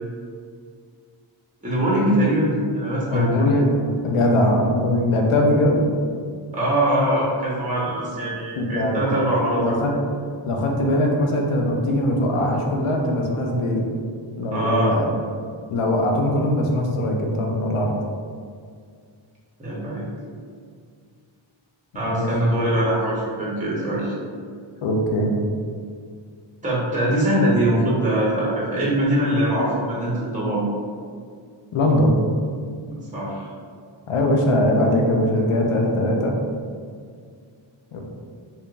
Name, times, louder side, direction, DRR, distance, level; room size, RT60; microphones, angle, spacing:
voice 1, 1.6-3.4 6.5-9.8 14.5-14.9 19.6-20.1 21.9-24.1 26.6-30.6 32.9-33.5, right 1 dB, 15° right, -6 dB, 0.8 m, -22 dB
voice 2, 3.1-5.8 8.6-9.1 9.5-9.9 10.5-13.8 14.4-15.1 15.7-17.9 22.1-22.3 24.8-25.3 31.7-32.2 34.1-36.3 37.9-38.0, left 1 dB, 80° left, 1 dB, 0.6 m, -21 dB
3.6 x 2.8 x 2.3 m, 2.1 s
wide cardioid pair, 95°, 50 cm